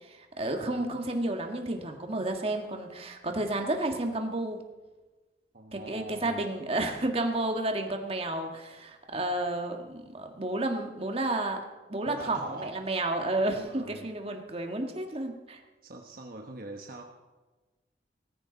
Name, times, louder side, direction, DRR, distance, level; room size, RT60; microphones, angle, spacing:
voice 1, 0.1-4.6 5.7-11.6 11.9-15.6, right 2 dB, 35° right, 4 dB, 1.7 m, -31 dB
voice 2, 5.5-6.4 12.1-12.9 13.5-14.0 15.8-17.0, right 2 dB, 55° right, 2 dB, 1.2 m, -42 dB
18.5 x 15.0 x 4.0 m, 1.2 s
head